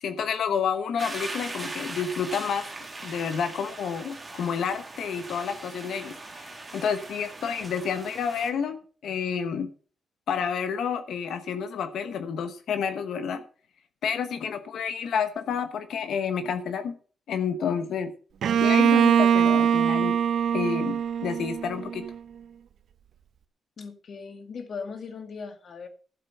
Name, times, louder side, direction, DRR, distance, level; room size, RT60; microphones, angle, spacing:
voice 1, 0.0-2.7 3.0-9.7 10.3-13.4 14.0-16.9 17.3-18.1 18.6-20.2 20.5-22.0, left 7 dB, 65° left, 9 dB, 1.1 m, -29 dB
sound 1, 1.0-8.5, right 2 dB, 15° right, 2.1 m, -40 dB
Bowed string instrument, 18.4-22.2, right 8 dB, 60° right, 0.8 m, -22 dB
voice 2, 23.8-25.9, left 5 dB, 45° left, 7 dB, 2.0 m, -38 dB
12.5 x 7.6 x 5.6 m, 0.41 s
wide cardioid pair, 170°, 0 cm